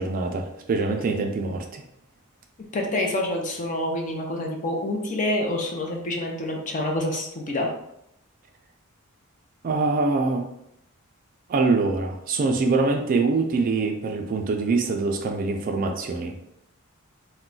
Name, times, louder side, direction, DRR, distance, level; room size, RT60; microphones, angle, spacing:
voice 1, 0.0-1.8 9.6-10.4 11.5-16.4, right 3 dB, 40° right, 4 dB, 0.3 m, -24 dB
voice 2, 2.7-7.7, left 1 dB, 35° left, 1 dB, 0.5 m, -27 dB
2.3 x 2.1 x 3.8 m, 0.78 s
head